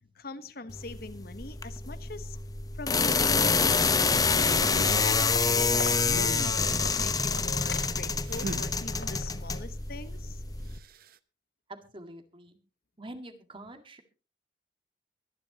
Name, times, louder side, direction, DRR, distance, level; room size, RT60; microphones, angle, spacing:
voice 1, 0.1-2.4 2.8-3.9 4.7-10.4, left 3 dB, 55° left, 1.1 m, -42 dB
sound 1, 0.7-10.8, left 4 dB, 20° left, 0.9 m, -27 dB
Livestock farm animals working animals, 4.3-9.5, left 2 dB, 80° left, 4.1 m, -40 dB
sound 2, 4.4-5.0 5.9-6.8 8.3-8.8 10.7-11.1, right 2 dB, 55° right, 0.8 m, -39 dB
voice 2, 11.7-12.6 13.0-14.0, right 1 dB, 30° right, 1.9 m, -45 dB
23.5 x 10.5 x 2.9 m
head